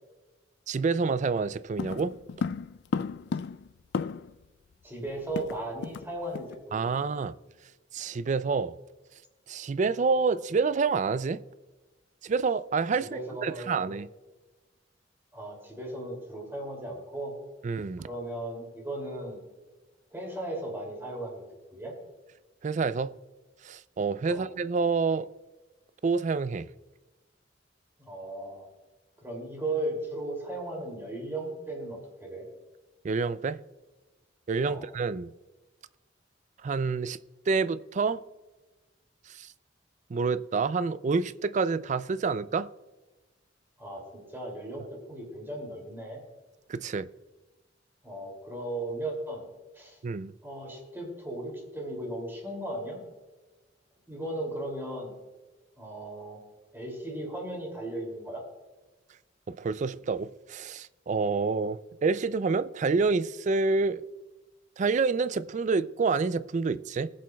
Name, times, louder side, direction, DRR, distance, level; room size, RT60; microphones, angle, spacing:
voice 1, 0.7-2.1 6.7-7.3 7.9-8.8 9.5-11.4 12.2-14.1 17.6-18.1 22.6-23.1 23.6-25.3 26.0-26.7 33.0-33.6 34.5-35.3 36.6-37.2 37.5-38.2 39.3-39.5 40.1-42.7 46.7-47.1 50.0-50.3 59.5-64.0 64.8-67.1, right 4 dB, 40° right, 0.4 m, -28 dB
sound 1, 1.8-4.4 4.7-4.8 5.1-6.1 6.3-6.6 6.9-7.2, left 5 dB, 60° left, 0.3 m, -34 dB
voice 2, 4.8-7.0 13.0-13.9 15.3-17.3 18.0-19.4 20.1-21.4 21.7-21.9 24.3-24.5 28.0-28.7 29.2-32.4 34.7-34.8 43.8-46.2 48.0-49.4 49.7-50.0 50.4-53.0 54.1-55.1 55.8-56.4 56.7-58.4, right 1 dB, 15° right, 2.6 m, -36 dB
19.5 x 7.5 x 2.3 m
head